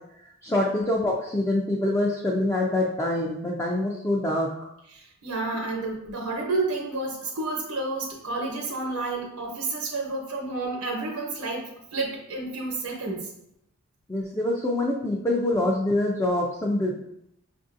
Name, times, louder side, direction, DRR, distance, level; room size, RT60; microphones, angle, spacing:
voice 1, 0.4-4.5 14.1-17.0, left 1 dB, 15° left, -3 dB, 0.3 m, -25 dB
voice 2, 4.9-13.3, right 3 dB, 85° right, -1 dB, 0.9 m, -30 dB
5.3 x 2.6 x 2.5 m, 0.78 s
head